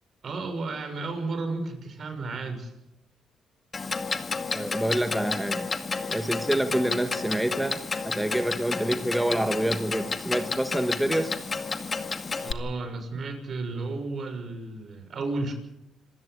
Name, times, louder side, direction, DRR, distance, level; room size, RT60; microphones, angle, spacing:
voice 1, 0.2-2.7 12.4-15.5, right 3 dB, 50° right, 7 dB, 6.5 m, -33 dB
Clock, 3.7-12.5, left 4 dB, 35° left, 2.1 m, -31 dB
voice 2, 4.5-5.7 6.1-11.3, right 1 dB, 5° right, 8 dB, 1.6 m, -27 dB
27.0 x 15.5 x 8.3 m, 0.85 s
cardioid pair, 90°, 0 cm